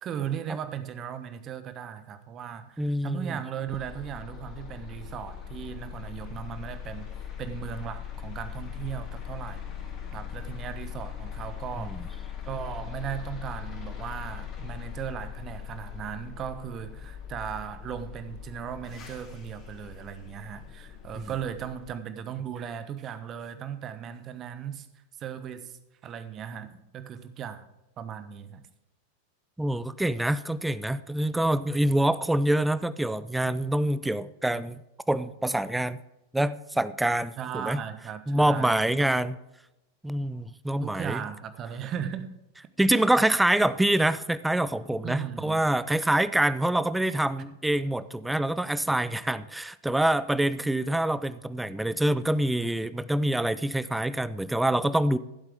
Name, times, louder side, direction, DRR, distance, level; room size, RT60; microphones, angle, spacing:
voice 1, 0.0-7.1 7.4-9.6 10.1-12.0 12.5-24.9 25.2-27.7 28.0-28.6 37.4-39.2 40.8-42.3 42.9-43.0 45.0-45.6, right 8 dB, 30° right, 11 dB, 1.0 m, -37 dB
voice 2, 2.8-3.4 11.8-12.1 21.2-21.3 29.6-34.8 35.1-36.0 36.3-37.8 38.3-39.4 40.0-41.2 42.8-55.2, right 1 dB, 5° right, 16 dB, 0.5 m, -26 dB
sound 1, 3.7-21.8, left 8 dB, 30° left, 3.2 m, -40 dB
15.0 x 8.0 x 3.6 m, 0.93 s
figure-of-eight pair, 90°, 0 cm